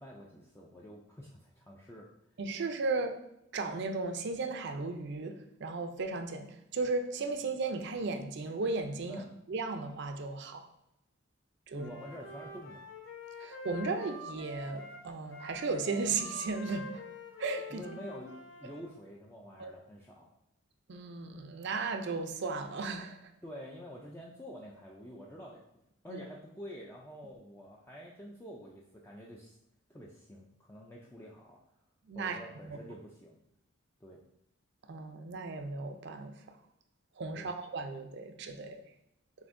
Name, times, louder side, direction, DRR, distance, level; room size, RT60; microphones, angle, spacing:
voice 1, 0.0-2.1 9.1-9.3 11.7-12.8 17.7-20.3 23.4-25.6 26.0-29.6 29.9-31.6 32.1-33.4 34.0-34.2 37.4-37.5, equal, 10° left, -3 dB, 0.3 m, -48 dB
voice 2, 2.4-3.2 3.5-9.2 9.5-10.6 11.7-11.9 13.4-17.0 17.4-17.8 19.6-19.7 20.9-23.3 26.1-26.2 32.1-32.4 32.7-32.8 34.9-36.3 37.2-38.8, right 3 dB, 55° right, 6 dB, 0.4 m, -35 dB
Wind instrument woodwind instrument, 11.8-18.8, left 1 dB, 65° left, 0.7 m, -46 dB
7.0 x 2.6 x 2.5 m, 0.80 s
head